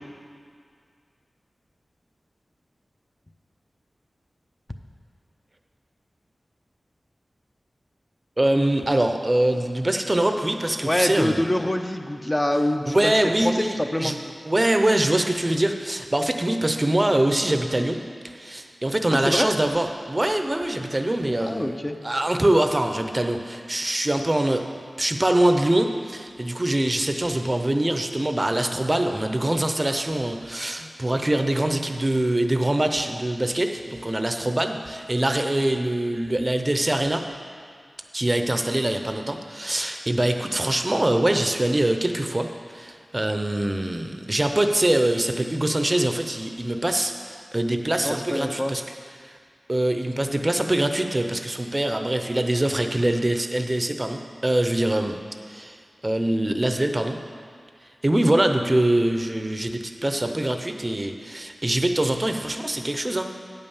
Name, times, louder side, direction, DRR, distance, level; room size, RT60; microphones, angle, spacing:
voice 1, 8.4-11.4 12.8-14.2 14.4-18.0 18.2-21.8 22.0-24.7 25.0-37.2 38.1-48.8 49.2-49.3 49.7-55.2 55.5-55.8 56.0-57.2 58.0-63.3, right 1 dB, 30° right, 6 dB, 0.6 m, -23 dB
voice 2, 10.8-13.1 13.4-14.1 19.1-19.6 21.4-22.0 30.8-30.9 48.0-48.7, left 1 dB, 20° left, 5 dB, 0.6 m, -25 dB
9.1 x 5.4 x 7.1 m, 2.1 s
wide cardioid pair, 50°, 0 cm